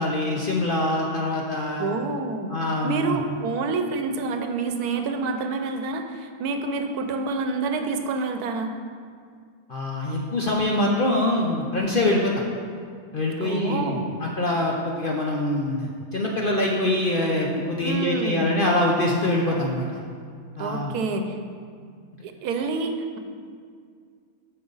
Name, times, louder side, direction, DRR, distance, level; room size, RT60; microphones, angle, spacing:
voice 1, 0.0-2.0 2.5-3.2 9.7-12.3 13.1-20.0 20.6-20.9, left 1 dB, 50° left, -1 dB, 0.6 m, -24 dB
voice 2, 1.8-2.5 2.8-8.8 13.4-14.1 17.8-18.5 20.6-21.4 22.2-23.2, right 3 dB, 80° right, 6 dB, 1.2 m, -28 dB
8.7 x 6.0 x 3.9 m, 2.1 s
omnidirectional pair, 1.6 m